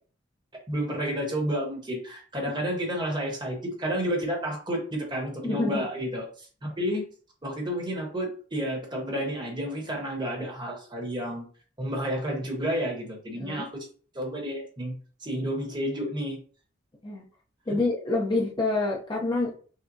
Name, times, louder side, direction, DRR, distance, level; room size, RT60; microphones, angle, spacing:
voice 1, 0.7-7.1 7.4-11.4 11.8-13.9 14.1-15.0 15.2-16.4 17.7-17.8, equal, 25° right, 1.0 m, -31 dB
voice 2, 5.4-5.8 13.3-13.7 17.0-17.2 17.7-19.5, left 2 dB, 25° left, 0.7 m, -27 dB
5.8 x 2.1 x 2.7 m
head